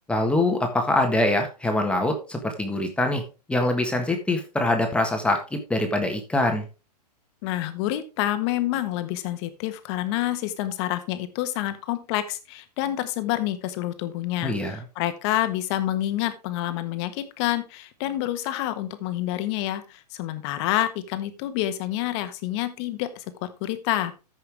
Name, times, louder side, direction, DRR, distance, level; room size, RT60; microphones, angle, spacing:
voice 1, 0.1-3.2 3.5-6.6 14.4-14.8, left 1 dB, 5° left, 4 dB, 1.5 m, -24 dB
voice 2, 7.4-24.1, left 14 dB, 40° left, 10 dB, 1.4 m, -28 dB
14.0 x 5.7 x 3.4 m, 0.31 s
hypercardioid pair, 135°, 21 cm